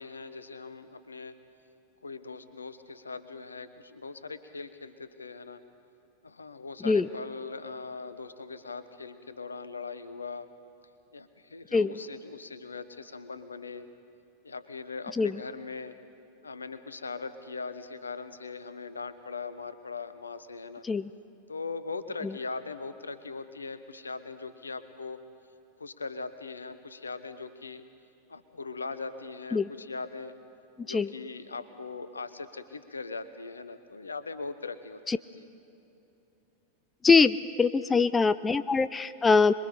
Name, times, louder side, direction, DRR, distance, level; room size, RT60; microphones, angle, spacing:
voice 1, 0.0-1.4 2.0-5.6 6.2-10.5 11.1-13.9 14.4-16.0 16.4-20.8 21.5-25.2 25.8-27.8 28.3-30.4 30.8-35.0 35.3-35.5 37.8-38.5, left 4 dB, 75° left, 12 dB, 1.0 m, -40 dB
voice 2, 37.0-39.5, left 4 dB, 15° left, 15 dB, 0.4 m, -23 dB
26.5 x 22.0 x 5.1 m, 2.8 s
figure-of-eight pair, 90°, 0 cm